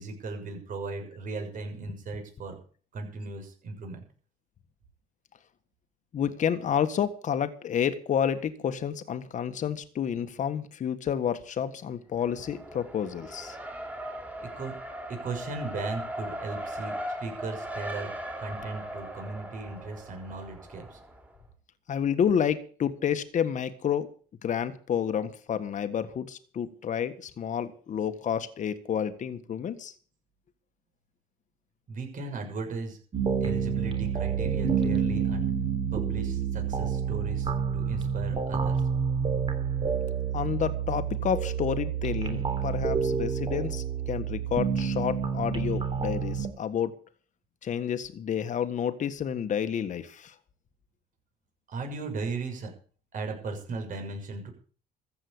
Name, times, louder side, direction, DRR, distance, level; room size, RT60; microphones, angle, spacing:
voice 1, 0.0-2.6 2.9-4.0 14.4-14.7 15.1-18.1 18.4-21.0 31.9-33.0 33.4-35.5 35.9-38.8 51.7-52.7 53.1-54.5, right 3 dB, 50° right, 4 dB, 6.6 m, -37 dB
voice 2, 6.1-13.6 21.9-24.1 24.4-29.9 40.3-46.9 47.6-50.3, left 8 dB, 45° left, 9 dB, 1.6 m, -30 dB
Race car auto racing, 12.2-21.3, equal, 10° right, 3.6 m, -38 dB
sound 1, 33.1-46.5, right 7 dB, 30° right, 3.4 m, -28 dB
14.5 x 8.8 x 8.6 m, 0.43 s
cardioid pair, 110°, 17 cm